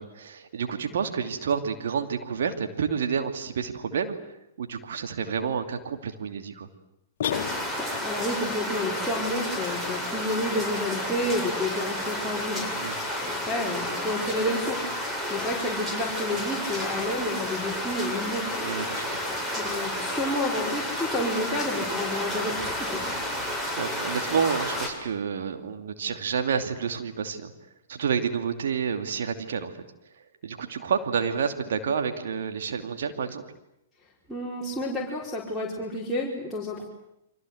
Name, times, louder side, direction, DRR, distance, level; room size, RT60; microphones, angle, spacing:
voice 1, 0.0-4.1 4.6-6.7 12.7-12.9 18.6-19.2 23.8-27.5 27.9-29.7 30.4-33.4, right 6 dB, 60° right, 6 dB, 2.7 m, -29 dB
sound 1, 7.2-8.1, left 9 dB, 55° left, 1.9 m, -31 dB
sound 2, 7.3-24.9, left 1 dB, 15° right, 7.5 m, -31 dB
voice 2, 7.5-14.8 15.3-18.4 19.2-23.0 34.3-36.9, left 1 dB, 5° left, -6 dB, 5.3 m, -30 dB
29.5 x 24.5 x 8.0 m, 0.84 s
figure-of-eight pair, 110°, 0 cm